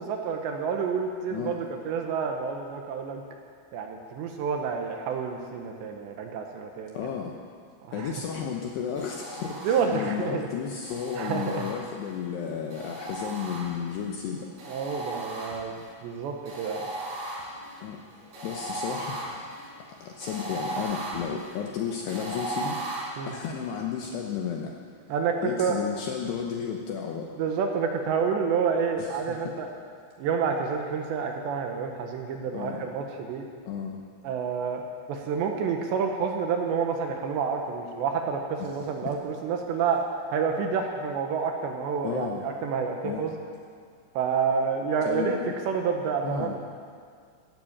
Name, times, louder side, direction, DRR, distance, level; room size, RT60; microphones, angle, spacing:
voice 1, 0.0-3.2 3.7-7.0 7.9-8.1 9.6-10.5 11.2-11.7 14.7-15.7 16.0-16.9 23.2-23.3 25.1-25.8 27.4-29.7 30.2-33.4 34.2-34.8 35.1-40.0 40.3-43.4 44.1-45.4 45.7-46.6, right 6 dB, 75° right, 3 dB, 2.9 m, -29 dB
voice 2, 6.9-7.4 7.9-14.5 17.8-18.0 18.4-19.2 20.0-22.8 23.2-24.7 25.4-27.3 29.0-29.4 32.5-32.9 33.7-34.0 38.6-39.1 42.0-42.5 43.0-43.3 45.1-45.4 46.2-46.6, left 7 dB, 75° left, 1 dB, 2.6 m, -33 dB
sound 1, 9.0-10.2 10.8-12.2 12.7-14.0 14.6-15.9 16.5-23.0, right 2 dB, 50° right, 6.4 m, -37 dB
13.5 x 12.5 x 8.7 m, 2.1 s
omnidirectional pair, 5.9 m